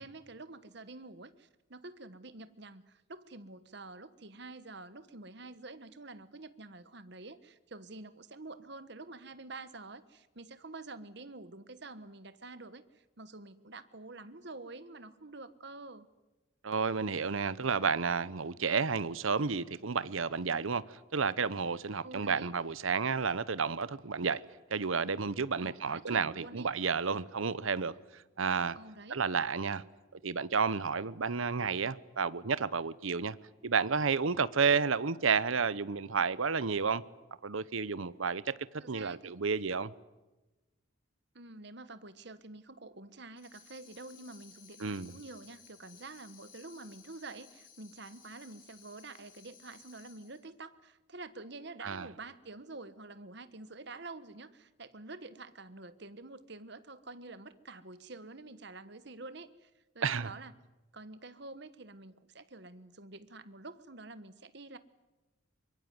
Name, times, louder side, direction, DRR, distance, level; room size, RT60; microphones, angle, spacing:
voice 1, 0.0-16.1 22.0-22.5 25.6-26.7 28.7-29.2 38.8-39.3 41.3-60.5 60.9-64.8, right 3 dB, 55° right, 1.3 m, -48 dB
voice 2, 16.6-24.4 24.7-28.8 29.1-29.8 30.2-33.4 33.6-37.0 37.4-38.6 38.9-39.9 44.8-45.1 51.8-52.1 60.0-60.3, right 5 dB, 75° right, 0.8 m, -31 dB
Tambourine, 43.4-50.5, left 7 dB, 40° left, 4.7 m, -58 dB
24.0 x 22.5 x 9.6 m
head